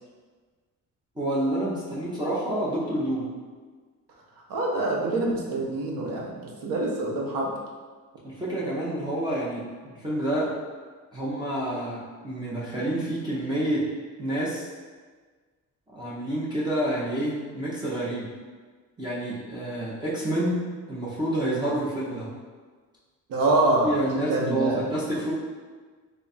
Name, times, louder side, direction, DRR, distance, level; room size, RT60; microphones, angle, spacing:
voice 1, 1.2-3.3 8.2-10.5 11.1-13.9 14.2-14.7 15.9-18.3 19.0-22.3 23.8-25.3, right 1 dB, 15° right, -8 dB, 0.5 m, -28 dB
voice 2, 4.5-7.5 23.3-24.8, right 2 dB, 90° right, -2 dB, 0.8 m, -25 dB
3.3 x 2.3 x 4.0 m, 1.5 s
cardioid pair, 180°, 33 cm